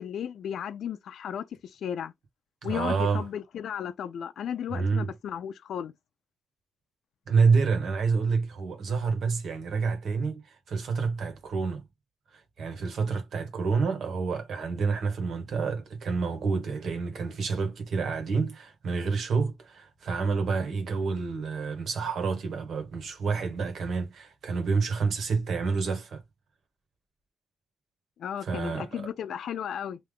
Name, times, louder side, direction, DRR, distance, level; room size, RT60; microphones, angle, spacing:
voice 1, 0.0-2.1 2.6-5.9 28.2-30.0, left 9 dB, 65° left, 0.4 m, -34 dB
voice 2, 2.6-3.3 4.7-5.1 7.3-11.8 12.3-26.2 28.4-29.0, right 5 dB, 55° right, 1.5 m, -28 dB
3.5 x 2.7 x 3.7 m
wide cardioid pair, 165°, 0 cm